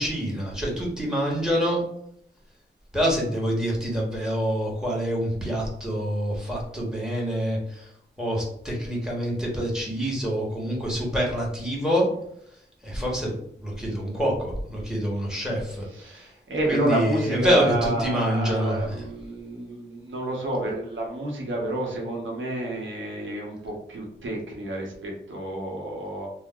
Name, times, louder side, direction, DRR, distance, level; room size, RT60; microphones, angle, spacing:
voice 1, 0.0-1.8 2.9-7.9 8.2-12.1 12.8-13.3 13.6-16.3 16.7-19.0, equal, 5° right, -2 dB, 1.3 m, -26 dB
voice 2, 15.9-26.3, right 1 dB, 85° right, -1 dB, 0.9 m, -30 dB
2.8 x 2.1 x 3.6 m, 0.70 s
cardioid pair, 60°, 19 cm